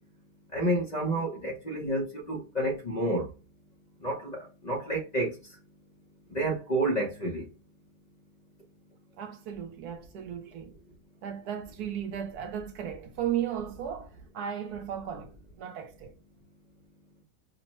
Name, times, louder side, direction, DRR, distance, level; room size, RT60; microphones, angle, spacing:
voice 1, 0.5-3.3 4.0-4.4 4.6-5.3 6.3-7.4, right 1 dB, 45° left, 0.5 m, -29 dB
voice 2, 9.2-10.7 11.2-16.1, right 9 dB, 70° right, 1.0 m, -35 dB
4.9 x 2.1 x 3.0 m
omnidirectional pair, 1.9 m